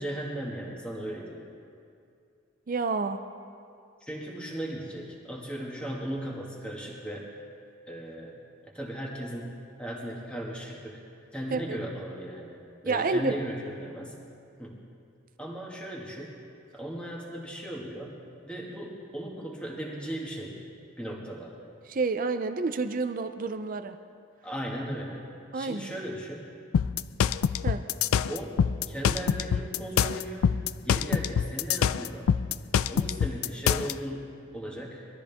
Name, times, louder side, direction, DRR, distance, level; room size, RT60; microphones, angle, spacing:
voice 1, 0.0-1.4 4.0-7.3 7.9-8.4 8.6-11.0 11.3-14.2 14.6-14.8 15.4-16.4 16.7-18.2 18.5-20.6 21.0-21.5 24.4-25.2 25.5-26.5 28.3-28.6 28.9-30.5 30.8-32.3 32.9-35.1, right 1 dB, 5° left, -3 dB, 2.0 m, -37 dB
voice 2, 2.7-3.2 11.5-11.6 12.8-13.3 21.9-24.0 25.5-25.9 27.6-27.8, right 3 dB, 40° right, 9 dB, 0.5 m, -29 dB
sound 1, 26.7-33.9, left 8 dB, 85° left, 0.3 m, -25 dB
22.0 x 13.0 x 3.5 m, 2.5 s
head